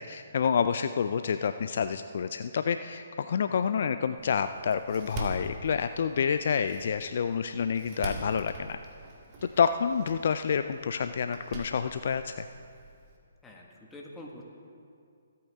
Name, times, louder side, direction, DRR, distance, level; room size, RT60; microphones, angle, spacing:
voice 1, 0.0-8.8 9.4-12.5, left 7 dB, 55° left, 10 dB, 0.4 m, -28 dB
Door, 4.2-13.2, right 3 dB, 30° right, 1.8 m, -44 dB
voice 2, 13.4-14.4, left 1 dB, 10° left, -2 dB, 1.7 m, -46 dB
24.0 x 8.6 x 3.6 m, 2.4 s
figure-of-eight pair, 135°, 0 cm